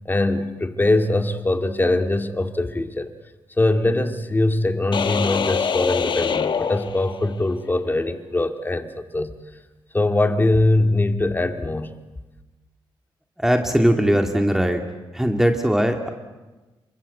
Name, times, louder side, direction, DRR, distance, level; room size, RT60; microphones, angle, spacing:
voice 1, 0.1-3.1 3.6-9.3 9.9-12.0, left 2 dB, 20° left, 6 dB, 2.2 m, -22 dB
sound 1, 4.9-7.5, left 6 dB, 60° left, 1.3 m, -24 dB
voice 2, 13.4-14.8 15.1-16.1, equal, 5° right, 4 dB, 2.2 m, -19 dB
27.0 x 24.0 x 8.3 m, 1.2 s
cardioid pair, 85°, 9 cm